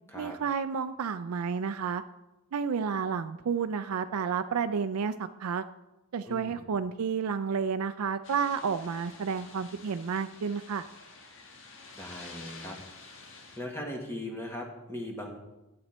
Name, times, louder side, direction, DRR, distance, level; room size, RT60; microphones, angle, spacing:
voice 1, 0.1-2.0 2.5-5.6 6.1-10.9, right 6 dB, 85° right, 9 dB, 0.4 m, -31 dB
voice 2, 6.2-6.6 12.0-12.8 13.6-15.3, left 1 dB, 10° left, 1 dB, 1.4 m, -39 dB
sound 1, 8.2-13.6, left 3 dB, 60° left, 1.5 m, -49 dB
11.5 x 7.8 x 4.3 m, 1.0 s
head